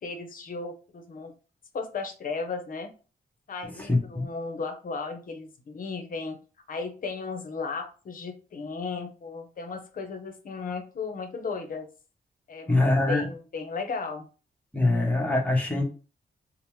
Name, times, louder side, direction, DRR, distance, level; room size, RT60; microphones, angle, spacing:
voice 1, 0.0-1.3 1.7-2.9 3.5-6.4 6.7-11.9 12.5-14.3, left 4 dB, 55° left, 5 dB, 0.6 m, -35 dB
voice 2, 3.6-4.3 12.7-13.3 14.7-15.8, left 2 dB, 10° left, 0 dB, 0.9 m, -24 dB
2.9 x 2.0 x 3.1 m, 0.35 s
wide cardioid pair, 105°, 17 cm